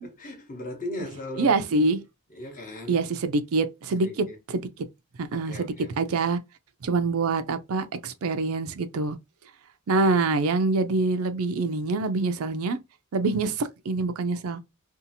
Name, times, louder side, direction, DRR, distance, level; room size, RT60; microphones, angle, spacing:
voice 1, 0.0-1.6 2.3-3.0 4.0-4.4 5.3-6.0, left 1 dB, 35° left, 0.8 m, -38 dB
voice 2, 1.4-2.0 2.9-4.7 5.2-6.4 6.8-9.2 9.9-12.8 13.1-14.6, right 3 dB, 70° right, 0.4 m, -25 dB
2.7 x 2.4 x 2.6 m
head